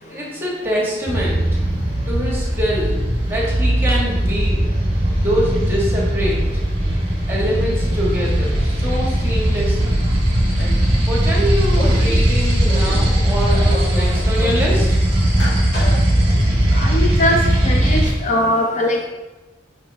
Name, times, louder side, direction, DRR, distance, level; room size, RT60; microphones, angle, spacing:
voice 1, 0.0-1.4 2.1-4.6 5.2-6.4 7.3-10.0 11.1-15.0, equal, 15° right, -4 dB, 1.5 m, -24 dB
Market town motorbikes, 1.1-18.1, right 1 dB, 35° right, 1.2 m, -18 dB
sound 1, 10.4-10.9 11.7-12.2 12.6-13.1 13.4-14.7 15.3-16.0, left 1 dB, 85° left, 2.0 m, -29 dB
voice 2, 16.7-17.4 17.6-19.0, left 1 dB, 45° left, 1 dB, 0.5 m, -20 dB
5.5 x 5.1 x 3.4 m, 1.1 s
head